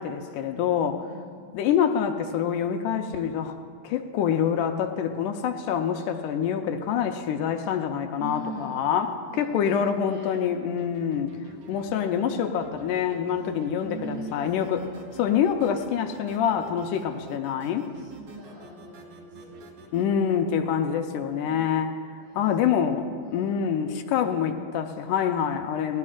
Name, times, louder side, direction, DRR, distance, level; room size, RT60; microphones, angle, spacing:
voice 1, 0.0-1.0 1.5-3.5 3.8-11.3 11.7-14.8 15.2-17.8 19.9-21.9 22.3-26.0, left 8 dB, 80° left, 4 dB, 1.9 m, -26 dB
voice 2, 1.0-1.5 8.2-9.0 9.3-9.6 10.0-10.3 13.3-13.4 13.8-14.9 17.0-17.2 17.7-19.6 21.4-21.7 22.2-22.5 23.2-23.5 23.9-24.3, right 1 dB, 85° right, -7 dB, 4.7 m, -42 dB
sound 1, 10.8-20.1, right 3 dB, 65° right, 1.5 m, -47 dB
19.0 x 17.5 x 2.5 m, 2.1 s
omnidirectional pair, 4.2 m